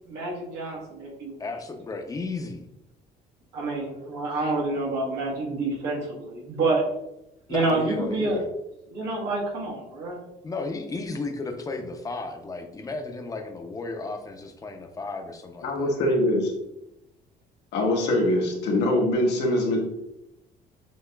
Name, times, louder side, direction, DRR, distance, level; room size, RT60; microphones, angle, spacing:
voice 1, 0.1-1.5 3.5-6.9 7.5-8.4 8.9-10.2, right 2 dB, 90° right, -3 dB, 1.5 m, -28 dB
voice 2, 1.4-2.7 7.5-8.5 10.4-15.9, left 3 dB, 20° left, 5 dB, 0.6 m, -34 dB
voice 3, 15.6-16.5 17.7-19.8, left 1 dB, 85° left, 0 dB, 1.2 m, -23 dB
6.8 x 2.8 x 2.3 m, 0.87 s
cardioid pair, 110°, 17 cm